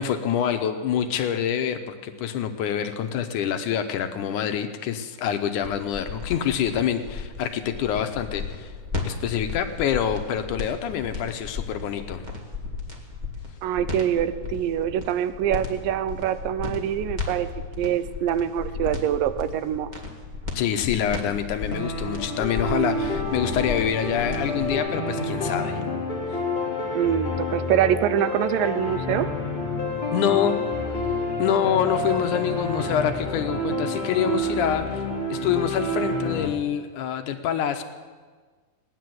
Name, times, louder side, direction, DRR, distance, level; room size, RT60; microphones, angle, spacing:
voice 1, 0.0-8.7 9.0-12.2 20.6-25.8 26.3-26.4 30.1-30.6 31.4-37.8, left 9 dB, 75° left, 8 dB, 2.1 m, -26 dB
sound 1, 5.6-24.8, left 4 dB, 20° right, 1.3 m, -34 dB
voice 2, 13.6-17.5 17.8-19.9 26.9-29.3, right 10 dB, 80° right, 12 dB, 2.4 m, -24 dB
sound 2, 21.7-36.5, left 1 dB, 25° left, 1.3 m, -29 dB
sound 3, 22.8-26.3 29.2-34.3, left 1 dB, 60° right, 4.5 m, -38 dB
18.0 x 10.5 x 7.7 m, 1.5 s
omnidirectional pair, 3.9 m